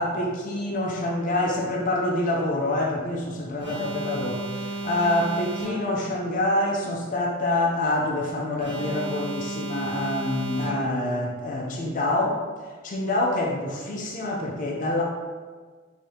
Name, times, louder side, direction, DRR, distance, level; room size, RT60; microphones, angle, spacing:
voice 1, 0.0-12.4 12.8-15.0, left 1 dB, 35° left, -2 dB, 0.5 m, -26 dB
Alarm, 3.6-6.1 8.6-11.1, right 2 dB, 25° right, 1.0 m, -33 dB
5.5 x 2.7 x 3.3 m, 1.4 s
head